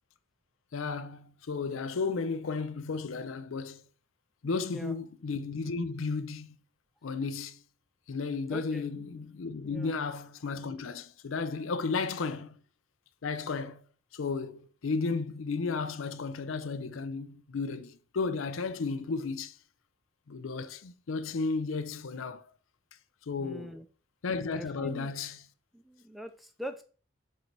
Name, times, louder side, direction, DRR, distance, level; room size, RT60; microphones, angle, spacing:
voice 1, 0.7-3.8 4.4-6.6 7.0-7.6 8.1-12.6 13.2-13.8 14.1-19.6 20.3-22.5 23.3-23.8 24.2-25.4, left 4 dB, 80° left, 0.5 m, -34 dB
voice 2, 8.5-8.8 9.6-9.9 23.4-23.8 24.5-25.1 25.7-26.8, equal, ahead, 0.4 m, -42 dB
5.5 x 3.9 x 4.5 m
head